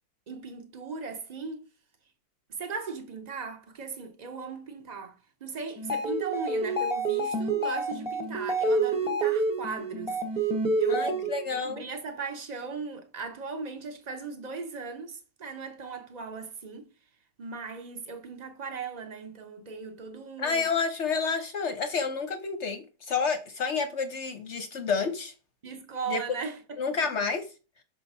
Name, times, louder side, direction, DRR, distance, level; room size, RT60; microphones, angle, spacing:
voice 1, 0.3-1.7 2.5-5.1 5.4-10.2 10.8-11.3 11.6-16.9 17.4-20.7 25.6-26.6, right 4 dB, 75° right, 0.3 m, -37 dB
sound 1, 5.8-11.5, right 2 dB, 5° right, 0.6 m, -28 dB
voice 2, 10.9-11.8 20.4-25.3 26.1-26.2 26.8-27.5, left 5 dB, 55° left, 0.8 m, -29 dB
6.2 x 3.3 x 5.3 m
omnidirectional pair, 1.9 m